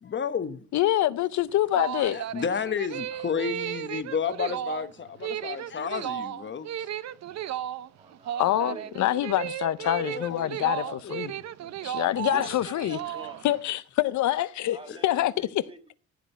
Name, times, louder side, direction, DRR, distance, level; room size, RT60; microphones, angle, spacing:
voice 1, 0.0-0.6 2.1-6.7 9.8-11.3 11.6-11.9 12.2-12.5 14.9-15.0, left 7 dB, 40° left, 1.0 m, -32 dB
voice 2, 0.7-2.2 8.4-11.3 11.8-13.0 13.4-14.8 15.0-15.6, left 13 dB, 70° left, 0.6 m, -25 dB
sound 1, 1.5-13.6, right 11 dB, 60° right, 0.6 m, -35 dB
voice 3, 8.0-9.0 12.3-13.4 14.7-16.0, right 2 dB, 20° right, 1.7 m, -46 dB
14.5 x 5.1 x 5.7 m
cardioid pair, 90°, 30 cm